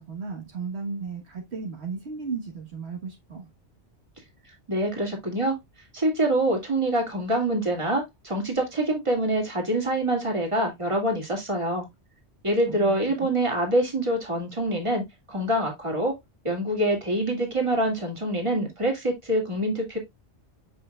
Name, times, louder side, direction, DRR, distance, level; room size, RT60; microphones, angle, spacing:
voice 1, 0.0-3.5 12.7-13.3, right 5 dB, 70° right, 1.6 m, -35 dB
voice 2, 4.7-5.6 5.9-11.9 12.4-16.2 16.4-20.0, right 1 dB, 25° right, 2.4 m, -25 dB
7.8 x 5.5 x 2.3 m
omnidirectional pair, 1.2 m